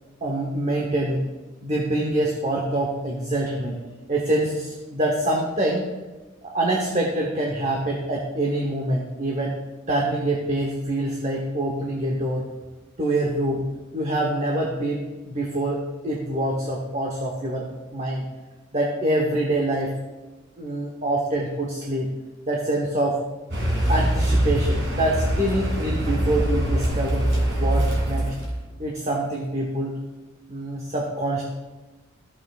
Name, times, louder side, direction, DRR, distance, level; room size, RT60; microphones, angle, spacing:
voice 1, 0.2-1.2 1.6-3.8 4.1-5.9 6.4-9.6 9.9-12.5 13.0-13.6 13.9-18.2 18.7-19.9 20.6-22.1 22.5-23.2 23.9-28.3 28.8-30.0 30.5-31.4, right 1 dB, 35° right, -1 dB, 1.0 m, -25 dB
Car, 23.5-28.6, right 1 dB, 65° right, 2.5 m, -23 dB
14.5 x 5.6 x 2.4 m, 1.2 s
head